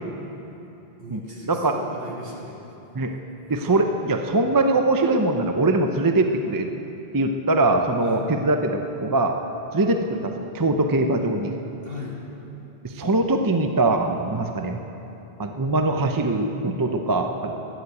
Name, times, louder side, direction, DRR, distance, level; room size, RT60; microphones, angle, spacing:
voice 1, 1.0-2.6 8.0-8.3 11.8-12.2, left 1 dB, 65° right, -3 dB, 2.7 m, -37 dB
voice 2, 3.5-6.7 7.1-9.3 9.7-11.5 12.8-14.8 15.4-17.7, right 2 dB, 25° right, 5 dB, 0.6 m, -22 dB
13.0 x 11.0 x 8.3 m, 3.0 s
omnidirectional pair, 1.0 m